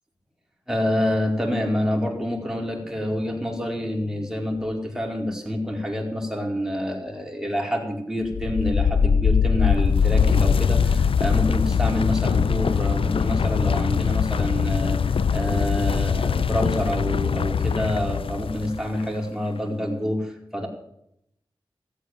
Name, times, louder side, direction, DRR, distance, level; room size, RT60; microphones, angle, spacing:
voice 1, 0.7-20.7, left 1 dB, 5° right, 0 dB, 4.5 m, -27 dB
sound 1, 8.2-19.1, left 6 dB, 75° left, 0.5 m, -22 dB
14.5 x 8.4 x 9.4 m, 0.78 s
cardioid pair, 45°, 9 cm